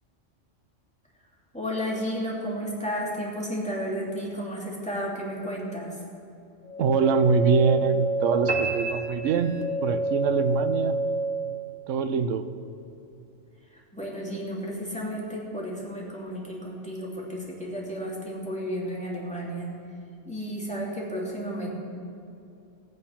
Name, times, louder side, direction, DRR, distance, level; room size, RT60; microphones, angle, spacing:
voice 1, 1.5-6.0 13.7-19.7 20.3-21.7, equal, 5° left, -4 dB, 2.6 m, -32 dB
sound 1, 6.6-11.6, right 2 dB, 35° left, 1.1 m, -28 dB
voice 2, 6.8-9.5 9.8-10.9 11.9-12.5, right 5 dB, 80° right, 10 dB, 1.1 m, -24 dB
sound 2, 8.5-10.0, right 3 dB, 40° right, 1.3 m, -32 dB
15.0 x 9.5 x 5.7 m, 2.6 s
omnidirectional pair, 1.3 m